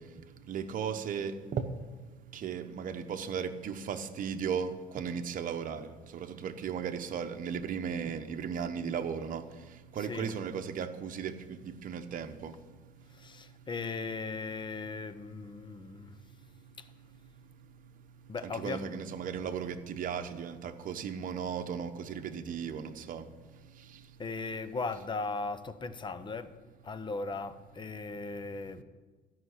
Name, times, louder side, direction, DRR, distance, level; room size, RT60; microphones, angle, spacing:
voice 1, 0.5-1.6 2.3-9.4 9.9-12.5 18.4-23.2, right 7 dB, 55° right, 1.0 m, -36 dB
voice 2, 13.1-16.1 18.3-18.8 24.2-26.5 26.8-28.8, left 4 dB, 30° left, 0.8 m, -37 dB
13.0 x 5.9 x 9.5 m
cardioid pair, 110°, 17 cm